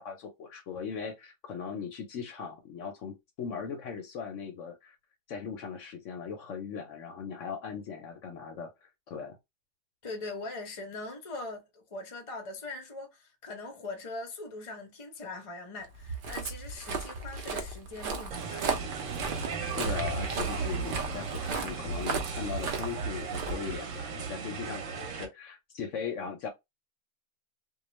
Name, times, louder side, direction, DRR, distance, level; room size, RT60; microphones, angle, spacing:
voice 1, 0.0-5.0 5.3-8.7 9.1-9.4 19.6-26.5, left 6 dB, 65° left, 0.8 m, -39 dB
voice 2, 10.0-18.9, left 3 dB, 40° left, 0.5 m, -41 dB
Walk footsteps, 15.9-24.2, right 4 dB, 85° right, 0.4 m, -36 dB
sound 1, 18.3-25.3, right 5 dB, 65° right, 0.9 m, -36 dB
2.3 x 2.2 x 3.0 m
omnidirectional pair, 1.6 m